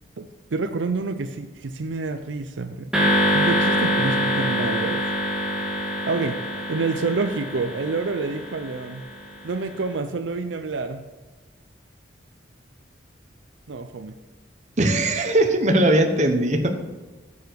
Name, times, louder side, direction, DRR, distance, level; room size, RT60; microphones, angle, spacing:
voice 1, 0.2-2.9 3.3-5.1 6.1-6.4 6.7-9.1 9.4-11.0 13.7-14.2, right 3 dB, 80° right, 8 dB, 0.5 m, -28 dB
sound 1, 2.9-9.3, equal, 5° right, 1.6 m, -25 dB
voice 2, 14.8-16.7, right 1 dB, 40° right, 4 dB, 1.1 m, -19 dB
9.6 x 7.0 x 4.6 m, 1.2 s
head